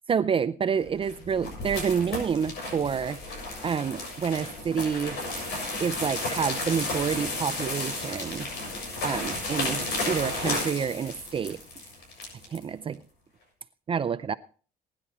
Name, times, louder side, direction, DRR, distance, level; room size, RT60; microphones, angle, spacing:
voice 1, 0.1-3.2 3.6-5.2 5.8-8.5 9.0-11.6 12.5-13.0 13.9-14.3, right 7 dB, 30° right, 0.5 m, -28 dB
sound 1, 0.9-12.6, left 2 dB, 75° left, 6.8 m, -33 dB
20.5 x 10.5 x 3.0 m
cardioid pair, 110°, 17 cm